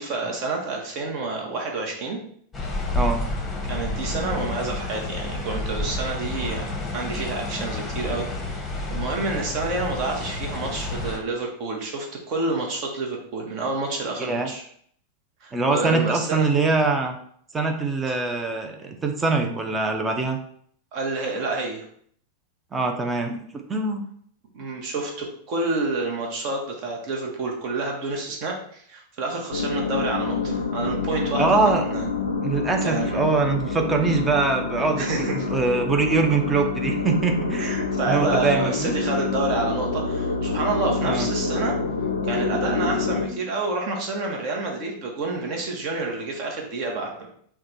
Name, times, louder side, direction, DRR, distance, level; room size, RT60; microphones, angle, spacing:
voice 1, 0.0-2.2 3.7-14.6 15.4-16.5 20.9-21.8 24.5-31.6 31.9-32.0 32.8-33.2 35.0-35.4 37.6-41.8 42.2-47.3, right 3 dB, 40° right, 1 dB, 1.1 m, -28 dB
sound 1, 2.5-11.2, left 2 dB, 10° left, 0.9 m, -30 dB
voice 2, 14.2-14.5 15.5-17.2 17.5-20.4 22.7-23.4 23.7-24.0 31.4-31.9 32.4-37.8 38.1-38.9 41.0-41.3, right 4 dB, 15° right, 3 dB, 0.7 m, -23 dB
sound 2, 29.5-43.3, left 4 dB, 75° left, 0.5 m, -27 dB
3.6 x 2.3 x 4.4 m, 0.62 s
figure-of-eight pair, 90°, 0 cm